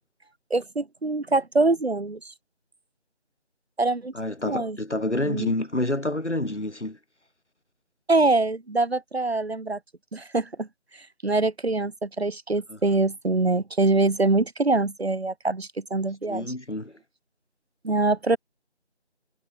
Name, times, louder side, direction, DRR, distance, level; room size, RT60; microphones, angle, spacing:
voice 1, 0.5-2.3 3.8-4.1 4.5-4.8 5.2-5.5 8.1-9.8 10.1-10.7 11.2-16.5 17.8-18.4, right 3 dB, 65° right, 1.4 m, -24 dB
voice 2, 4.1-7.0 12.7-12.8 16.3-17.0, left 1 dB, 80° left, 4.1 m, -28 dB
figure-of-eight pair, 165°, 34 cm